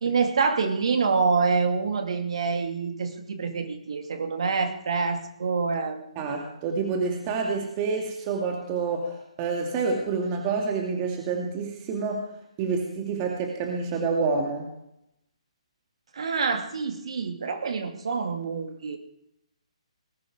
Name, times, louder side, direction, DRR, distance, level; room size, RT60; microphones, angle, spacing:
voice 1, 0.0-6.0 16.1-19.0, right 5 dB, 60° right, 6 dB, 2.5 m, -26 dB
voice 2, 6.2-12.2 12.6-14.7, right 4 dB, 30° right, 1 dB, 2.4 m, -28 dB
20.0 x 11.5 x 4.9 m, 0.78 s
figure-of-eight pair, 140°, 3 cm